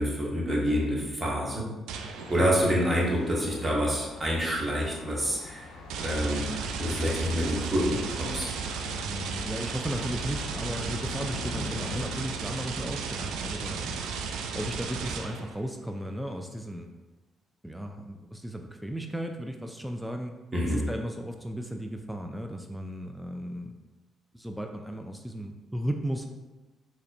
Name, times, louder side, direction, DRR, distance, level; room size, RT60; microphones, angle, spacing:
voice 1, 0.0-1.7 2.0-5.7 6.0-6.5 6.8-8.5 20.5-20.8, equal, 25° right, -4 dB, 1.4 m, -27 dB
sound 1, 1.9-2.8 5.9-15.6, right 5 dB, 80° right, 0.3 m, -35 dB
Thunder, 2.1-12.1, left 3 dB, 80° left, 0.5 m, -43 dB
voice 2, 2.4-2.8 9.0-14.0 14.5-16.9 17.6-20.3 20.6-23.7 24.3-26.3, equal, 5° right, 4 dB, 0.4 m, -35 dB
4.1 x 3.0 x 2.6 m, 1.1 s
hypercardioid pair, 55°, 0 cm